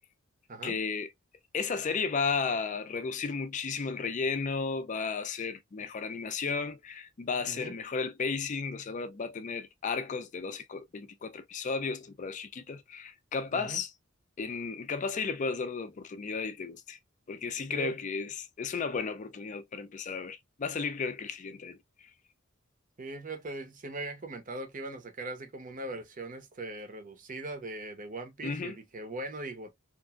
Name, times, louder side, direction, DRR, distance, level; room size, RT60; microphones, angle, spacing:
voice 1, 0.6-1.1 1.5-13.9 14.4-17.0 17.3-22.1 28.4-28.8, left 5 dB, 40° left, 0.4 m, -34 dB
voice 2, 23.0-29.7, right 2 dB, 40° right, 0.7 m, -40 dB
2.9 x 2.5 x 2.3 m
head